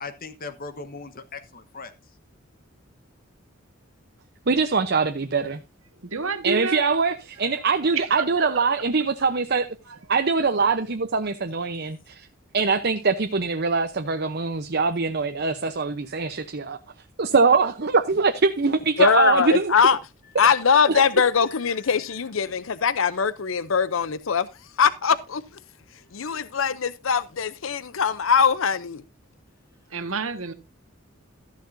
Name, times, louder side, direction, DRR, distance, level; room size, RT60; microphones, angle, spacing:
voice 1, 0.0-1.9 21.2-21.9, left 4 dB, 45° left, 1.2 m, -39 dB
voice 2, 4.5-5.6 6.4-9.6 10.1-12.3 12.5-16.8 17.2-19.7 20.9-21.0, right 4 dB, 50° right, 0.8 m, -23 dB
voice 3, 6.0-6.9 8.0-8.7 9.9-10.0 29.9-30.5, right 4 dB, 80° right, 1.7 m, -29 dB
voice 4, 19.0-20.0 20.4-24.5 24.8-25.4 26.1-29.0, left 6 dB, 70° left, 0.7 m, -21 dB
13.5 x 10.5 x 2.7 m
head